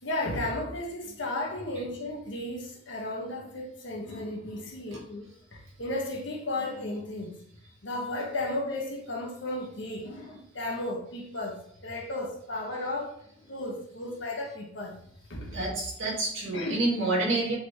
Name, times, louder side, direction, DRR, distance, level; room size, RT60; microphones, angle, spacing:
voice 1, 0.0-7.3 7.8-13.1 13.5-15.0 15.3-15.7 16.5-16.8, left 1 dB, 60° left, 0 dB, 1.6 m, -34 dB
voice 2, 15.5-17.6, right 2 dB, 65° right, -3 dB, 2.7 m, -28 dB
8.4 x 4.1 x 3.2 m, 0.70 s
head